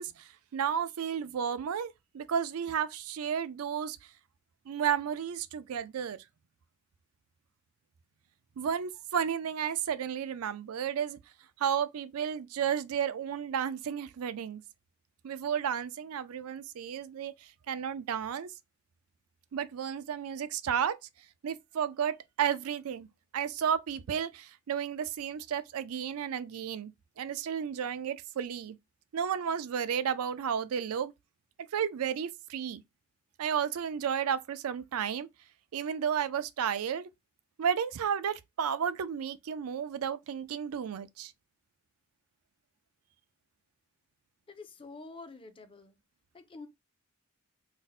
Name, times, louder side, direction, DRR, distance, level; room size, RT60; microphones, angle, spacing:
voice 1, 0.0-4.0 4.7-6.2 8.6-11.2 11.6-14.6 15.2-17.3 17.7-18.5 19.5-21.0 21.4-23.1 23.3-26.9 27.2-28.8 29.1-31.1 31.7-32.8 33.4-35.3 35.7-37.1 37.6-41.3, right 8 dB, 85° right, 0.4 m, -32 dB
voice 2, 44.5-46.0 46.3-46.7, left 3 dB, 25° left, 0.4 m, -47 dB
2.6 x 2.1 x 3.9 m
head